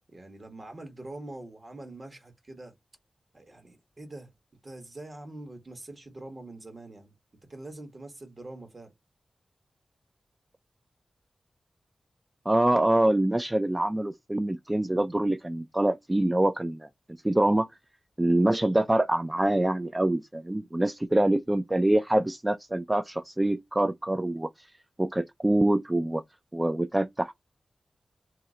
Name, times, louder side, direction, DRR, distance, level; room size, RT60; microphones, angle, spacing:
voice 1, 0.1-2.7 3.3-4.3 4.6-7.1 7.5-8.9, right 2 dB, 40° right, 1.2 m, -44 dB
voice 2, 12.5-16.9 17.2-17.7 18.2-24.7 25.0-26.2 26.5-27.3, right 1 dB, 20° right, 0.3 m, -25 dB
2.7 x 2.1 x 3.6 m
wide cardioid pair, 70°, 0 cm